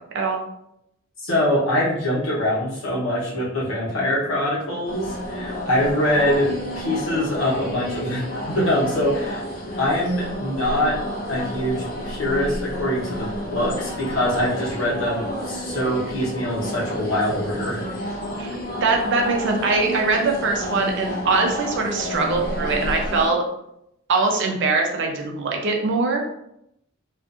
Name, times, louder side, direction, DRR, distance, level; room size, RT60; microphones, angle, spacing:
voice 1, 1.2-9.4 9.8-11.0 11.3-17.8, left 1 dB, 65° left, -6 dB, 1.0 m, -24 dB
sound 1, 4.8-23.3, equal, 45° left, 0.6 m, -30 dB
voice 2, 18.4-23.4 24.1-26.2, right 3 dB, 60° right, 2 dB, 0.5 m, -22 dB
2.5 x 2.4 x 2.5 m, 0.78 s
head